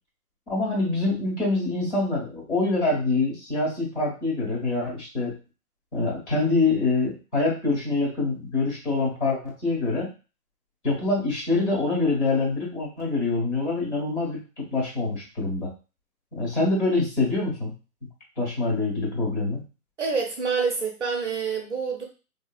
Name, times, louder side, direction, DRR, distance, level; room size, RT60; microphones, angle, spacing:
voice 1, 0.5-5.3 5.9-10.1 10.8-15.7 16.3-17.7 18.4-19.6, left 3 dB, 45° left, -4 dB, 1.6 m, -25 dB
voice 2, 20.0-22.0, right 5 dB, 50° right, 2 dB, 0.6 m, -27 dB
2.8 x 2.7 x 2.3 m, 0.32 s
hypercardioid pair, 180°, 46 cm